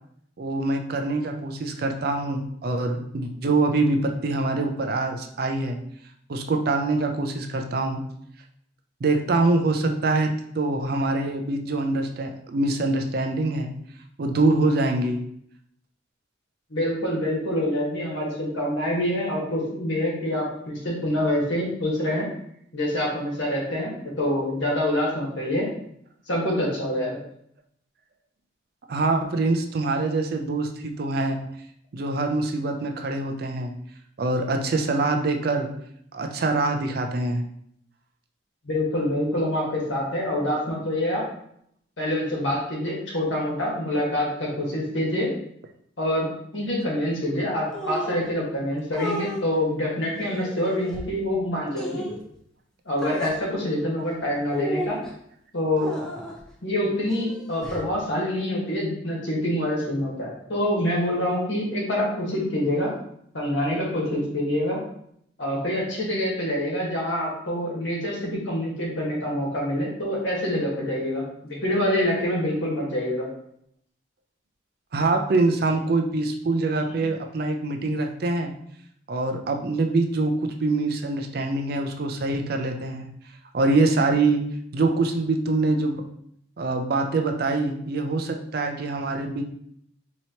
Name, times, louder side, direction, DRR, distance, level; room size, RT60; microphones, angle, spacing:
voice 1, 0.4-5.8 6.3-8.0 9.0-13.7 14.2-15.2 28.9-31.4 31.9-33.7 34.2-35.7 36.1-37.4 74.9-78.5 79.1-83.1 83.5-84.4 84.7-86.0 86.6-89.4, right 2 dB, 50° right, 4 dB, 0.4 m, -24 dB
voice 2, 16.7-22.3 22.7-25.7 26.3-27.2 38.6-41.2 42.0-45.3 46.0-46.3 46.5-52.0 52.8-55.0 55.5-55.9 56.6-62.9 63.3-64.8 65.4-73.3 76.9-77.0, left 1 dB, 80° left, -3 dB, 1.4 m, -26 dB
sound 1, 47.7-48.3 48.9-49.4 50.2-51.0 51.7-52.2 53.0-53.4 54.5-55.1 55.8-56.4 57.1-57.9, left 1 dB, 5° left, 0.5 m, -33 dB
4.3 x 2.9 x 2.8 m, 0.71 s
head